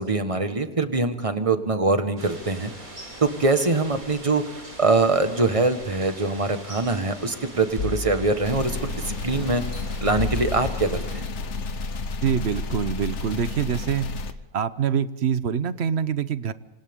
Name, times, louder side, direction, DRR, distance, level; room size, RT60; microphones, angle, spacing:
voice 1, 0.0-2.7 3.2-9.6 10.0-11.3, right 3 dB, 25° right, 8 dB, 1.5 m, -23 dB
sound 1, 2.2-11.2, right 1 dB, 85° right, 6.1 m, -42 dB
sound 2, 7.8-9.1 9.6-11.7 12.3-12.4, left 3 dB, 45° left, 1.1 m, -34 dB
sound 3, 8.4-14.3, left 3 dB, 60° left, 1.3 m, -31 dB
voice 2, 12.2-14.1 14.5-16.5, right 8 dB, 55° right, 14 dB, 1.0 m, -25 dB
27.0 x 26.0 x 3.7 m, 1.0 s
omnidirectional pair, 1.4 m